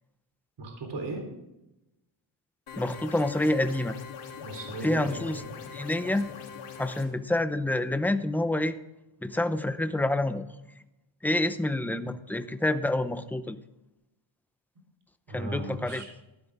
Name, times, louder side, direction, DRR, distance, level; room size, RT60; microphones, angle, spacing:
voice 1, 0.6-1.2 4.4-5.5 15.3-16.1, right 2 dB, 55° right, 2 dB, 3.7 m, -37 dB
sound 1, 2.7-7.1, left 7 dB, 85° left, 3.0 m, -42 dB
voice 2, 2.8-4.0 4.8-5.4 5.7-6.3 6.8-8.8 9.2-10.5 11.2-13.6 15.3-16.0, left 1 dB, 5° left, 10 dB, 0.7 m, -27 dB
14.5 x 12.0 x 3.6 m, 0.93 s
wide cardioid pair, 130°, 50 cm